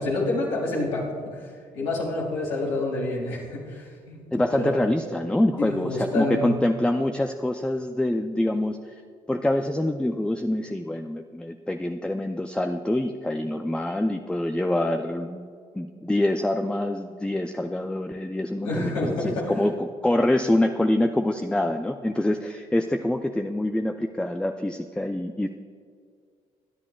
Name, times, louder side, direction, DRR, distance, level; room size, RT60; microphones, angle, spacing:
voice 1, 0.0-1.4 1.7-4.8 5.6-6.6 18.6-19.5, left 2 dB, 90° left, -4 dB, 3.3 m, -28 dB
voice 2, 4.3-8.8 9.3-15.5 15.7-25.5, left 1 dB, 5° left, 6 dB, 0.6 m, -25 dB
22.5 x 10.5 x 2.4 m, 2.1 s
hypercardioid pair, 50°, 17 cm